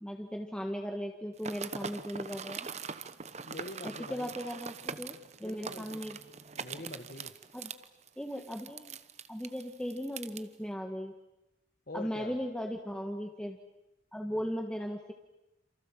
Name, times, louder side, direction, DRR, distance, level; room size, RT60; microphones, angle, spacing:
voice 1, 0.0-2.7 3.8-6.2 7.5-7.7 8.2-9.0 9.3-11.1 11.9-13.6 14.1-15.1, equal, 5° left, 3 dB, 1.6 m, -37 dB
sound 1, 1.4-10.4, right 5 dB, 40° right, 1.0 m, -42 dB
voice 2, 3.5-4.3 5.4-6.1 6.5-7.3 11.9-12.4, left 2 dB, 55° left, 5 dB, 1.7 m, -44 dB
28.5 x 28.0 x 7.5 m, 0.91 s
head